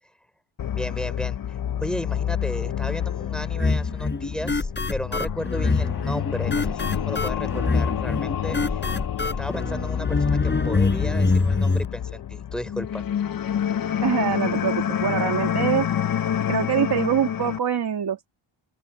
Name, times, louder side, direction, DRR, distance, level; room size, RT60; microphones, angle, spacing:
sound 1, 0.6-17.6, left 9 dB, 45° left, 0.8 m, -28 dB
voice 1, 0.7-9.1 9.4-13.3, equal, ahead, 5.5 m, -34 dB
sound 2, 3.6-11.9, left 3 dB, 20° left, 5.1 m, -25 dB
voice 2, 14.0-15.9 16.5-18.3, right 8 dB, 50° right, 2.9 m, -24 dB
open air
cardioid pair, 105°, 48 cm